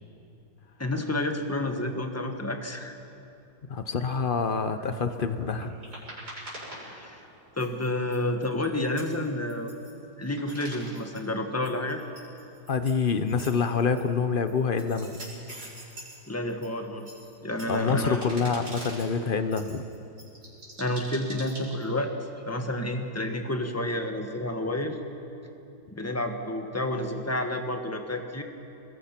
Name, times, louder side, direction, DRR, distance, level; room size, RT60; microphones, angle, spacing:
voice 1, 0.8-3.0 6.8-7.2 7.6-9.7 10.2-12.0 16.3-17.1 17.4-18.3 20.8-22.1 22.4-25.0 25.9-28.4, left 1 dB, 10° left, 5 dB, 1.2 m, -30 dB
voice 2, 3.7-5.7 12.7-15.1 17.7-19.8, left 5 dB, 50° left, 9 dB, 0.6 m, -26 dB
sound 1, 4.7-7.3 7.6-9.9 10.2-11.2 11.6-14.1 14.5-16.2 16.5-19.1 19.5-21.9, right 1 dB, 55° right, 7.5 m, -44 dB
25.5 x 21.5 x 5.9 m, 2.8 s
omnidirectional pair, 1.9 m